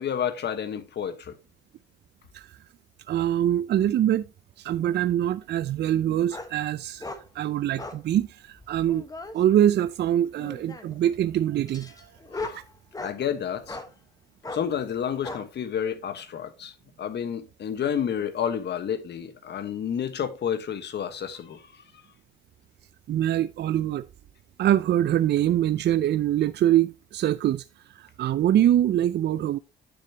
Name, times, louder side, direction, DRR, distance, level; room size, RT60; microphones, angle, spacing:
voice 1, 0.0-1.4 12.3-12.6 13.0-13.8 14.5-21.8, left 8 dB, 60° left, 1.4 m, -30 dB
voice 2, 3.1-4.2 4.6-9.1 9.3-12.1 12.5-12.6 23.1-24.0 24.6-27.6 27.9-29.6, right 11 dB, 60° right, 0.5 m, -24 dB
sound 1, 6.3-6.5 7.0-7.2 7.8-8.0 8.6-9.3 10.4-11.0 11.7-13.2 13.7-13.9 14.4-14.7 15.2-15.4, left 2 dB, 20° left, 1.3 m, -37 dB
9.6 x 7.0 x 2.9 m
cardioid pair, 90°, 20 cm